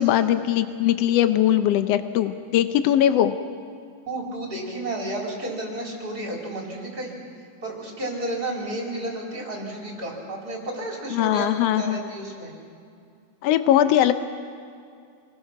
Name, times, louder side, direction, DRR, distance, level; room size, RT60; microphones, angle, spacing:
voice 1, 0.0-3.3 11.1-12.0 13.4-14.1, left 11 dB, 85° left, 10 dB, 1.4 m, -20 dB
voice 2, 4.1-7.2 7.6-12.5, right 1 dB, 30° right, -2 dB, 4.1 m, -32 dB
27.0 x 20.0 x 5.9 m, 2.3 s
omnidirectional pair, 3.7 m